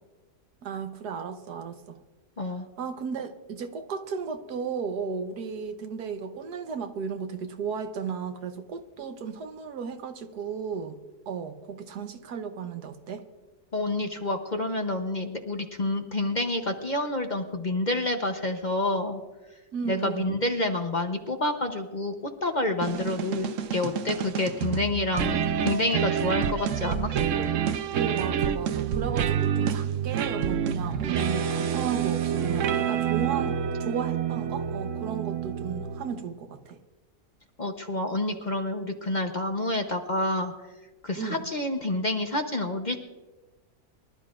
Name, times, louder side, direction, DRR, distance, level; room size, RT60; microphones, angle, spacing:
voice 1, 0.6-2.0 2.8-11.0 11.3-13.2 19.7-20.4 27.9-36.8 41.2-41.4, right 6 dB, 85° right, 8 dB, 1.5 m, -34 dB
voice 2, 13.7-19.2 19.9-22.1 22.4-27.1 37.6-40.5 41.0-43.0, left 2 dB, 35° left, 5 dB, 0.8 m, -28 dB
sound 1, 22.8-36.3, right 8 dB, 65° right, 0.9 m, -28 dB
24.0 x 12.5 x 2.5 m, 1.2 s
omnidirectional pair, 1.6 m